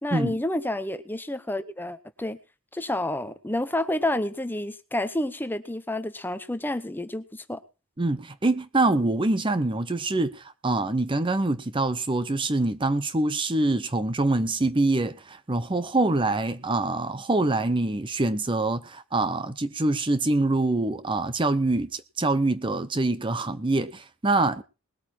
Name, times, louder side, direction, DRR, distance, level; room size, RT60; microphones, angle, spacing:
voice 1, 0.0-2.4 2.7-7.6, left 1 dB, 10° left, 0.8 m, -29 dB
voice 2, 8.0-24.6, right 2 dB, 25° right, 0.7 m, -25 dB
20.0 x 8.8 x 4.4 m
head